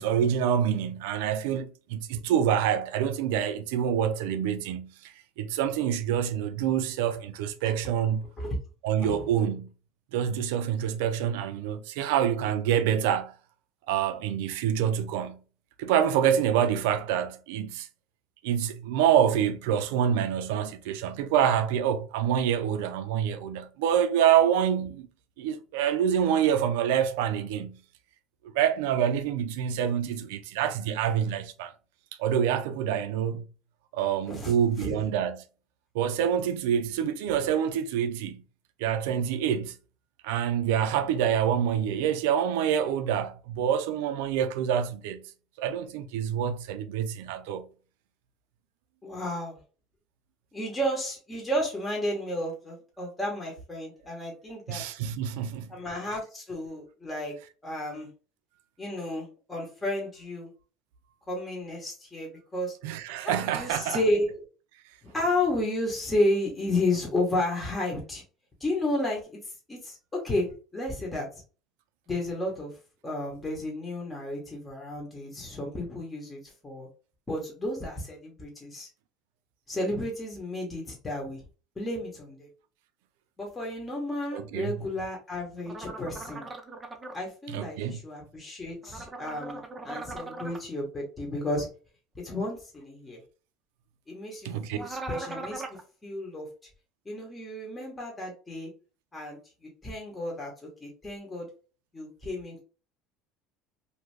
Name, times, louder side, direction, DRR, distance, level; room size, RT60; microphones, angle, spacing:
voice 1, 0.0-8.3 8.8-9.7 10.1-13.3 13.9-15.4 15.8-17.9 18.4-25.1 25.4-27.8 28.5-31.7 32.2-33.5 33.9-35.4 35.9-38.4 38.8-39.8 40.2-45.2 45.6-47.7 54.7-55.7 62.8-64.0 84.3-84.7 87.5-88.0 94.4-94.8, right 9 dB, 85° right, 0.4 m, -26 dB
voice 2, 49.0-49.6 50.5-54.8 55.7-57.3 57.6-58.1 58.8-60.5 61.3-62.7 63.2-64.3 65.0-68.2 68.6-71.3 72.1-72.7 73.0-76.9 77.3-78.9 79.7-81.4 81.8-82.5 83.4-86.5 87.1-91.7 92.2-93.2 94.1-95.6 96.0-96.5 97.0-98.7 99.1-99.4 99.8-100.5 100.8-101.5 101.9-102.6, left 1 dB, 15° left, 1.0 m, -32 dB
sound 1, 85.7-87.2 88.8-90.6 94.7-95.8, right 2 dB, 20° right, 0.5 m, -39 dB
2.6 x 2.4 x 3.2 m
supercardioid pair, 115°, 0 cm